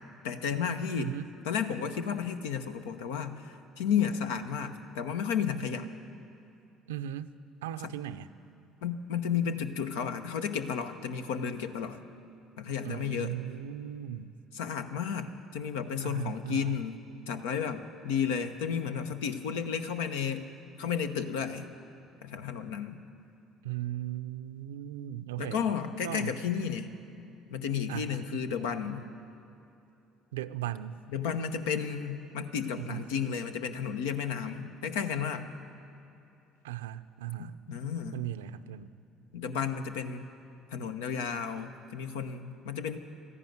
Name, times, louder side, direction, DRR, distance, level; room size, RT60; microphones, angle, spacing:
voice 1, 0.2-1.1 1.5-5.9 7.8-7.9 8.8-12.0 12.6-13.4 14.5-15.3 15.5-17.0 17.3-20.5 20.8-21.7 22.2-23.0 25.4-26.9 27.5-29.0 31.1-35.5 37.4-38.2 39.3-40.2 40.7-43.0, left 7 dB, 80° left, 9 dB, 0.9 m, -32 dB
voice 2, 1.0-1.3 6.9-7.3 7.6-8.3 12.8-14.4 16.0-16.8 23.6-25.7 26.0-26.4 27.9-28.4 30.3-31.0 32.8-33.1 36.6-37.6 38.1-38.9, right 12 dB, 90° right, 13 dB, 0.5 m, -37 dB
14.0 x 11.0 x 9.2 m, 2.8 s
hypercardioid pair, 70°, 0 cm